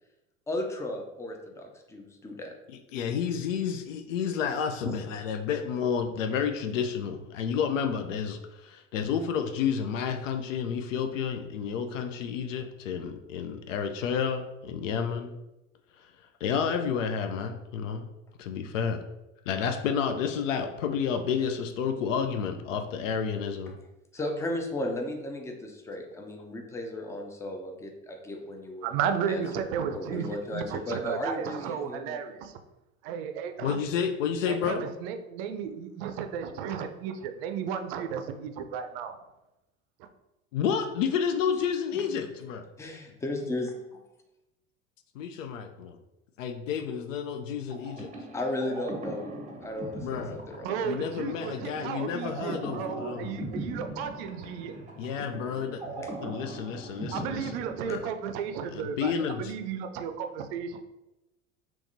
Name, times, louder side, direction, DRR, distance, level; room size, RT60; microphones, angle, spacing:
voice 1, 0.5-2.5 4.8-4.9 24.1-28.9 29.3-29.7 29.9-32.2 41.9-42.2 42.8-43.8 48.3-50.7, left 1 dB, 10° left, 3 dB, 0.4 m, -35 dB
voice 2, 2.7-15.3 16.0-16.1 16.4-18.1 18.4-19.0 19.5-23.7 33.6-34.8 40.5-42.6 45.1-46.0 46.4-48.1 50.0-50.4 50.8-53.3 55.0-57.5 57.8-58.0 58.7-59.5, left 7 dB, 70° left, 6 dB, 0.5 m, -30 dB
voice 3, 28.8-32.6 33.0-33.8 34.5-39.2 40.0-40.1 50.6-54.7 57.1-59.1 59.4-60.8, right 7 dB, 50° right, 7 dB, 0.5 m, -34 dB
sound 1, 47.7-58.4, right 1 dB, 20° right, 0.8 m, -40 dB
3.4 x 3.0 x 2.7 m, 0.95 s
figure-of-eight pair, 70°, 40 cm